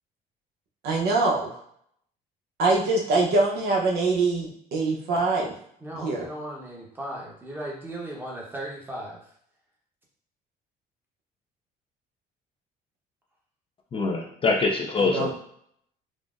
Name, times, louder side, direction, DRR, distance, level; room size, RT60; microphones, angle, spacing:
voice 1, 0.8-1.6 2.6-5.5 5.9-6.2 15.0-15.3, right 3 dB, 70° right, -1 dB, 0.8 m, -24 dB
voice 2, 5.8-9.3, right 1 dB, 10° right, -3 dB, 0.9 m, -37 dB
voice 3, 13.9-15.3, left 3 dB, 35° left, 1 dB, 0.5 m, -24 dB
3.7 x 2.1 x 2.4 m, 0.66 s
cardioid pair, 110°, 17 cm